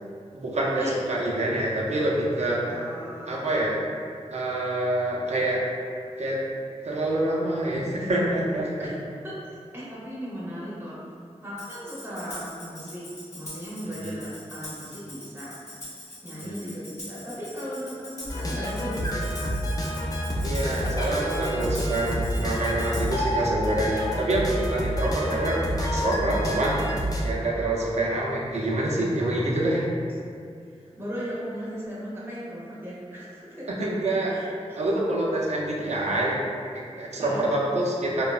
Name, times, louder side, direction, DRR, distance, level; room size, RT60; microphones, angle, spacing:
voice 1, 0.3-2.6 3.3-3.8 4.3-5.6 6.2-6.4 6.8-8.9 13.9-14.2 16.3-16.6 20.4-26.8 27.2-29.9 33.7-34.3 34.8-36.4 36.7-38.3, right 1 dB, 70° right, -4 dB, 0.5 m, -26 dB
voice 2, 2.7-3.3 8.8-8.9 9.2-11.0 11.4-13.1 13.3-15.5 16.2-19.3 30.7-33.7 34.3-34.8 37.2-37.5, equal, 20° right, -8 dB, 0.7 m, -37 dB
Tambourine, 11.6-23.3, left 1 dB, 70° left, 0.9 m, -43 dB
sound 1, 18.2-27.2, equal, 30° left, 0.4 m, -28 dB
2.9 x 2.1 x 2.3 m, 2.4 s
wide cardioid pair, 95°, 12 cm